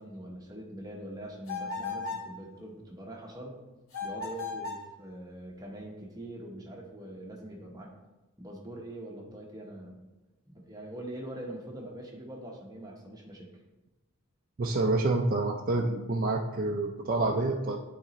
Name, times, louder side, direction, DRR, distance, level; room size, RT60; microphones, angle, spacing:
voice 1, 0.0-3.6 4.0-7.9 8.4-10.0 10.4-13.5, right 1 dB, 15° right, -1 dB, 1.0 m, -43 dB
sound 1, 1.5-2.3 3.9-4.9, left 4 dB, 80° left, 1.7 m, -36 dB
voice 2, 14.6-17.8, right 2 dB, 40° right, 1 dB, 0.4 m, -28 dB
9.7 x 4.1 x 3.0 m, 1.1 s
head